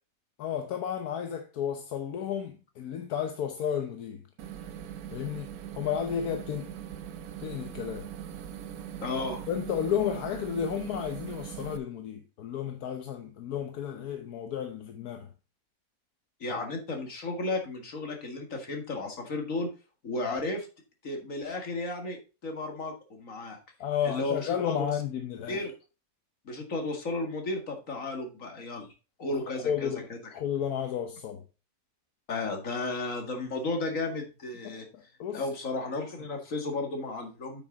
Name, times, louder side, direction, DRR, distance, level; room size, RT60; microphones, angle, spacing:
voice 1, 0.4-4.2 5.1-6.8 7.4-8.1 9.5-15.3 16.5-16.6 23.8-25.6 29.6-30.1 30.3-31.4 34.6-35.5, left 8 dB, 80° left, 1.4 m, -32 dB
sound 1, 4.4-11.8, right 10 dB, 75° right, 1.3 m, -41 dB
voice 2, 9.0-9.4 16.4-19.7 20.0-20.7 21.0-23.6 24.0-24.8 25.5-25.7 26.5-28.9 29.2-30.2 32.3-34.9 35.3-37.6, left 2 dB, 60° left, 2.3 m, -33 dB
8.8 x 6.1 x 3.9 m
omnidirectional pair, 1.6 m